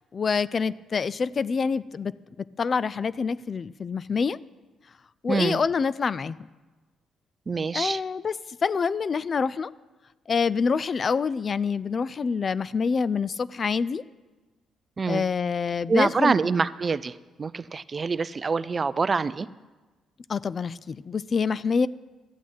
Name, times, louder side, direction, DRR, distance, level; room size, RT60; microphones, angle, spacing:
voice 1, 0.1-2.1 2.6-4.4 5.2-6.4 7.7-8.3 8.6-9.7 10.3-14.0 15.1-16.4 20.3-21.9, left 5 dB, 40° left, 19 dB, 0.3 m, -26 dB
voice 2, 5.3-5.6 7.5-8.0 15.0-15.2 15.9-17.1 17.4-19.5, right 4 dB, 35° right, 17 dB, 0.4 m, -25 dB
13.5 x 6.2 x 9.3 m, 1.2 s
cardioid pair, 90°, 0 cm